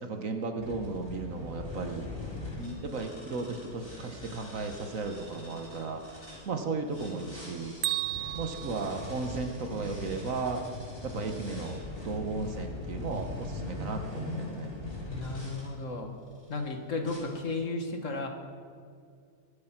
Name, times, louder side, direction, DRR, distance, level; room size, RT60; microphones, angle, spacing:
voice 1, 0.0-2.1 2.6-6.2 6.4-7.8 8.3-10.6 11.0-14.7, right 3 dB, 55° right, 5 dB, 1.5 m, -35 dB
sound 1, 0.6-6.4 6.9-15.7 16.3-16.6 17.0-17.2, left 2 dB, 35° left, 3.9 m, -41 dB
Bell, 7.8-9.9, right 14 dB, 75° right, 0.6 m, -35 dB
voice 2, 15.1-16.1 16.5-18.3, left 3 dB, 50° left, 4 dB, 1.8 m, -34 dB
22.5 x 8.5 x 5.9 m, 2.2 s
omnidirectional pair, 1.7 m